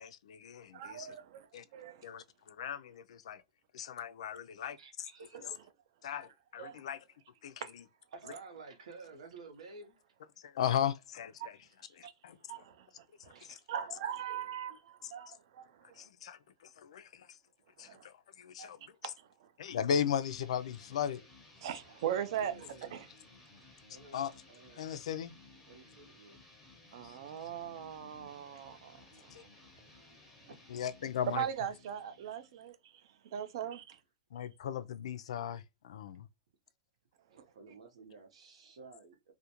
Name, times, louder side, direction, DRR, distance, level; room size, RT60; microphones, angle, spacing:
voice 1, 0.0-1.1 1.5-1.6 2.0-3.4 3.7-4.8 6.0-7.0 7.4-7.5 10.4-11.6 12.0-12.4 16.0-16.4 16.8-17.3 17.8-18.8 19.6-21.2 24.1-24.3 24.8-25.3 27.0-27.1 29.3-29.4 30.7-31.5 34.3-36.3, left 8 dB, 75° left, 0.3 m, -37 dB
voice 2, 0.7-1.5 1.7-2.1 6.6-6.8 7.6-7.7 11.4-11.5 12.0-12.1 12.5-13.4 13.7-16.1 17.8-18.1 18.6-18.7 19.0-19.5 21.6-22.5 22.9-23.1 26.9-29.5 31.3-33.0 33.3-33.8, right 9 dB, 50° right, 0.4 m, -40 dB
voice 3, 4.8-5.6 8.1-10.1 13.3-14.0 14.4-14.6 15.2-15.3 22.2-23.1 23.9-24.9 25.7-26.4 28.5-28.6 30.4-30.7 34.3-34.5 37.3-39.3, right 4 dB, 90° right, 0.8 m, -53 dB
sound 1, 20.2-32.7, left 3 dB, ahead, 0.6 m, -58 dB
2.4 x 2.1 x 2.8 m
supercardioid pair, 175°, 3 cm